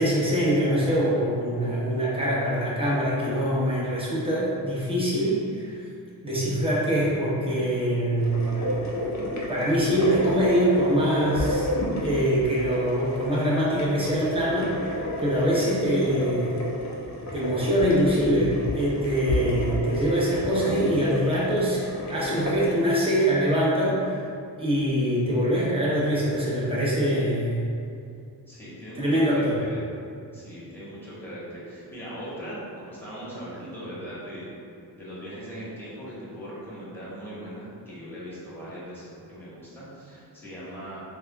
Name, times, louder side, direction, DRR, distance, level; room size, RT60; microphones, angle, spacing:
voice 1, 0.0-5.8 6.2-8.6 9.4-11.7 12.0-16.7 17.3-24.2 24.6-27.6 29.0-29.6, equal, 15° right, -7 dB, 0.8 m, -24 dB
sound 1, 8.2-22.7, left 1 dB, 40° left, 0.6 m, -31 dB
voice 2, 28.5-29.8 30.3-34.5 34.9-41.0, equal, 5° left, -9 dB, 1.2 m, -39 dB
3.5 x 2.3 x 2.2 m, 2.4 s
cardioid pair, 65°, 42 cm